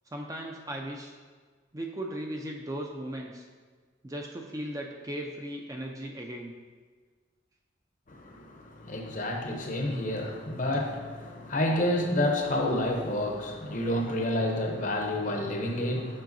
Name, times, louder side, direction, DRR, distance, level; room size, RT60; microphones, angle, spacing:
voice 1, 0.1-1.1 1.7-3.5 4.0-6.5, right 1 dB, 15° right, 1 dB, 0.4 m, -37 dB
voice 2, 8.1-16.2, left 1 dB, 45° left, 2 dB, 0.7 m, -29 dB
7.4 x 5.5 x 2.6 m, 1.5 s
head